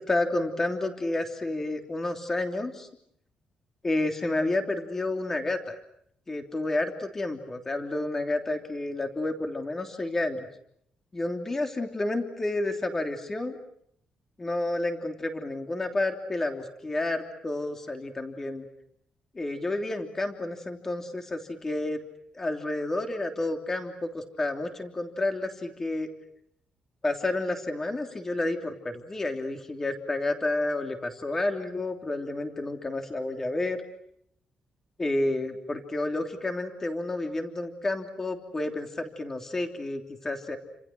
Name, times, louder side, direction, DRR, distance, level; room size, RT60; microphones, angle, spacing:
voice 1, 0.0-2.9 3.8-5.8 6.3-10.5 11.1-13.6 14.4-18.7 19.3-22.0 22.3-26.1 27.0-33.8 35.0-40.6, left 2 dB, 20° left, 5 dB, 3.2 m, -30 dB
30.0 x 27.0 x 6.3 m, 0.70 s
cardioid pair, 170°, 2 cm